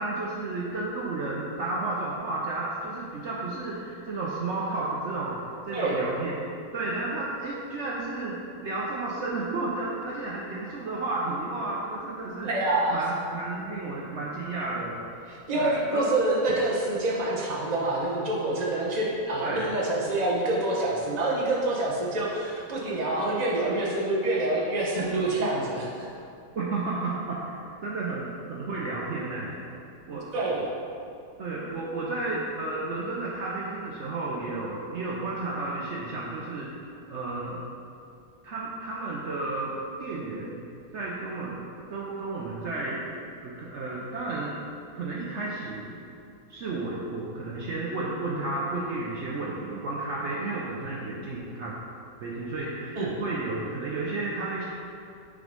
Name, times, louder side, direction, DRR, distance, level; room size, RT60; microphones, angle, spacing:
voice 1, 0.0-6.3 6.7-12.5 12.9-15.0 15.5-16.1 19.4-19.7 26.6-29.6 30.1-30.3 31.4-37.6 38.4-40.6 40.9-41.6 41.9-43.0 43.4-44.6 44.9-45.9 46.5-51.8 52.2-54.7, right 2 dB, 75° right, -5 dB, 0.6 m, -32 dB
voice 2, 5.7-6.0 12.4-13.0 15.3-26.1 30.3-30.6 53.0-53.2, right 2 dB, 35° right, -4 dB, 0.7 m, -27 dB
6.8 x 3.8 x 5.2 m, 2.5 s
omnidirectional pair, 2.1 m